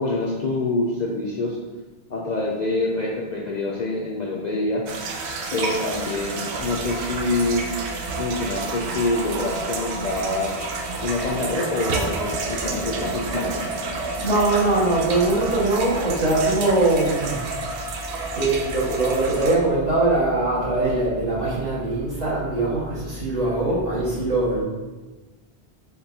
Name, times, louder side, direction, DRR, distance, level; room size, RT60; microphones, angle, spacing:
voice 1, 0.0-1.6 2.1-4.8 5.5-7.6 8.2-10.5 11.0-13.7, left 2 dB, 55° left, -3 dB, 0.5 m, -26 dB
sound 1, 4.9-19.6, right 3 dB, 85° right, 0.9 m, -29 dB
voice 2, 14.2-17.4 18.3-24.6, right 2 dB, 40° right, -9 dB, 1.5 m, -22 dB
4.3 x 3.7 x 2.7 m, 1.2 s
omnidirectional pair, 1.1 m